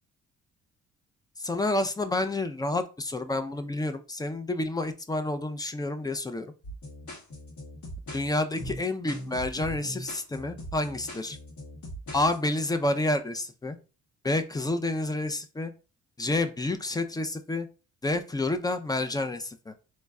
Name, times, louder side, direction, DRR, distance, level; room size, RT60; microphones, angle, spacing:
voice 1, 1.4-6.5 8.1-11.4 12.1-13.8 14.2-15.7 16.2-17.7 18.0-19.7, left 2 dB, 15° left, 9 dB, 0.4 m, -29 dB
sound 1, 6.6-12.4, equal, 70° left, 1.8 m, -40 dB
3.1 x 2.2 x 3.6 m, 0.33 s
cardioid pair, 90°, 30 cm